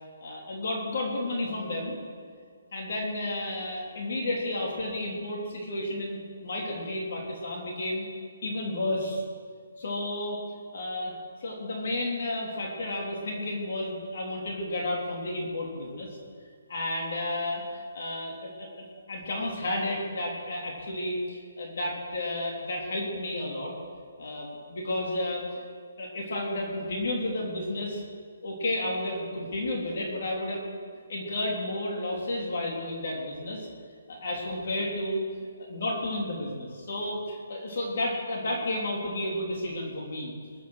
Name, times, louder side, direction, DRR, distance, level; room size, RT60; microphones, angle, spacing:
voice 1, 0.2-2.0 2.7-8.0 8.4-9.2 9.8-10.4 10.7-11.1 11.4-16.1 16.7-18.7 19.1-23.7 24.2-25.7 26.0-28.0 28.4-30.7 31.1-33.7 34.1-35.2 35.6-40.3, left 1 dB, 55° left, -1 dB, 3.3 m, -32 dB
22.0 x 9.2 x 6.4 m, 2.1 s
hypercardioid pair, 170°, 0 cm